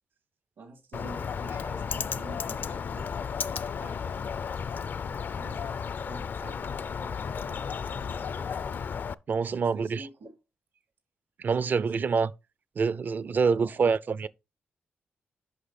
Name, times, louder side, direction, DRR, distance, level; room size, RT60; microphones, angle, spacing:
voice 1, 0.6-3.1 3.8-4.2 5.4-5.7 6.1-8.6 9.4-10.4 11.6-12.0 13.2-13.9, right 3 dB, 80° right, 2.4 m, -48 dB
Bird, 0.9-9.1, left 6 dB, 55° left, 0.4 m, -33 dB
voice 2, 9.3-10.0 11.4-12.3 12.8-14.3, right 5 dB, 50° right, 0.5 m, -26 dB
8.2 x 5.5 x 4.3 m
cardioid pair, 90°, 4 cm